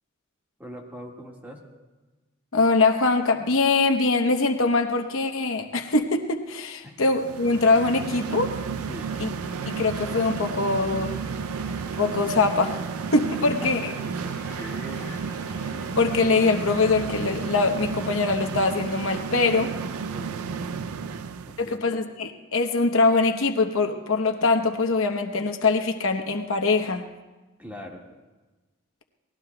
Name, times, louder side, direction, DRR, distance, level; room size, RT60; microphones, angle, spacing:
voice 1, 0.6-1.6 6.8-7.0 8.9-9.2 13.6-13.7 14.0-15.5 20.1-21.8 27.6-28.0, equal, 10° right, -1 dB, 1.7 m, -42 dB
voice 2, 2.5-8.5 9.2-9.3 9.7-11.2 12.0-12.8 13.1-13.9 16.0-19.7 21.6-27.1, left 3 dB, 70° left, 5 dB, 0.9 m, -23 dB
sound 1, 7.1-21.7, right 6 dB, 85° right, 0.5 m, -32 dB
Crowd, 9.3-17.6, left 2 dB, 10° left, 3.4 m, -45 dB
28.5 x 20.0 x 2.2 m, 1.2 s
head